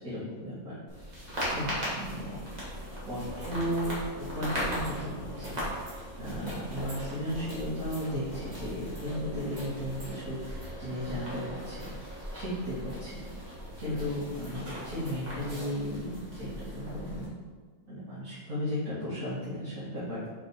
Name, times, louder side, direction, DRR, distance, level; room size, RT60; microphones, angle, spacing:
voice 1, 0.0-2.4 3.0-13.1 13.8-17.3 17.9-20.3, equal, 60° right, -13 dB, 2.4 m, -35 dB
sound 1, 0.9-17.3, equal, 25° right, 2.1 m, -38 dB
6.2 x 4.5 x 4.6 m, 1.5 s
omnidirectional pair, 1.6 m